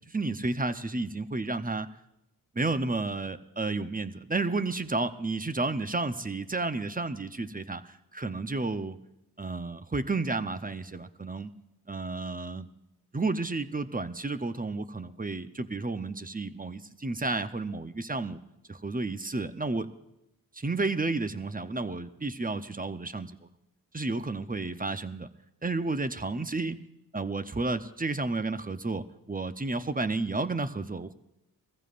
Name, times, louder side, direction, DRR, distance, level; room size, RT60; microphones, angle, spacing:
voice 1, 0.1-1.9 2.5-9.0 9.4-11.5 11.9-12.7 13.1-18.4 18.7-19.9 20.5-23.4 23.9-25.3 25.6-26.8 27.1-31.1, right 3 dB, 20° right, 10 dB, 0.8 m, -31 dB
21.0 x 15.0 x 2.5 m, 0.86 s
cardioid pair, 45°, 40 cm